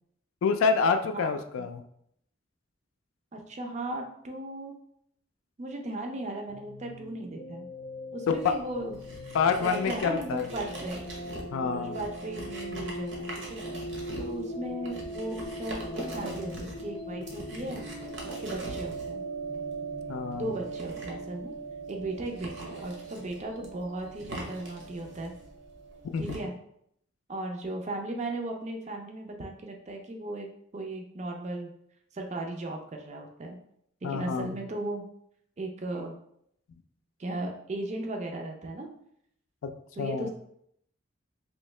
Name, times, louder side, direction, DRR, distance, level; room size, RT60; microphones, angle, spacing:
voice 1, 0.4-1.8 8.3-8.4 9.3-10.5 11.5-12.0 20.1-20.5 26.1-26.4 34.0-34.6 39.6-39.7 40.0-40.3, left 5 dB, 85° left, 7 dB, 0.3 m, -27 dB
voice 2, 3.3-4.8 5.6-7.7 8.1-9.0 9.6-11.1 11.6-13.6 14.2-17.8 18.2-19.2 20.3-21.5 21.9-25.3 26.2-26.5 27.3-30.5 30.7-31.7 32.1-33.6 34.0-35.0 35.6-36.2 37.2-38.9 39.9-40.3, right 1 dB, 35° right, 3 dB, 0.4 m, -36 dB
sound 1, 6.5-26.0, right 1 dB, 45° left, 0.6 m, -40 dB
sound 2, 8.3-26.4, right 1 dB, 60° right, 0.9 m, -43 dB
3.1 x 2.7 x 3.2 m, 0.71 s
head